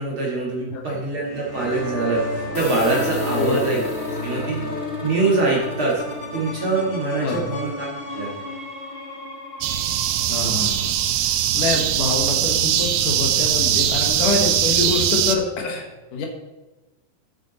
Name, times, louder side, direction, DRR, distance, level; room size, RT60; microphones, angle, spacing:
voice 1, 0.0-3.8 4.2-4.7 5.0-6.0 6.3-7.9 8.1-8.3, right 3 dB, 45° right, -4 dB, 2.0 m, -24 dB
sound 1, 1.2-8.6, left 1 dB, 15° left, 2.6 m, -32 dB
sound 2, 2.5-12.1, left 3 dB, 45° left, 0.8 m, -34 dB
voice 2, 3.4-3.7 7.2-7.5 10.3-11.0 11.2-16.3, left 4 dB, 70° left, 2 dB, 2.6 m, -26 dB
sound 3, 9.6-15.4, right 10 dB, 80° right, 2.2 m, -21 dB
10.5 x 9.2 x 4.0 m, 1.1 s
omnidirectional pair, 4.1 m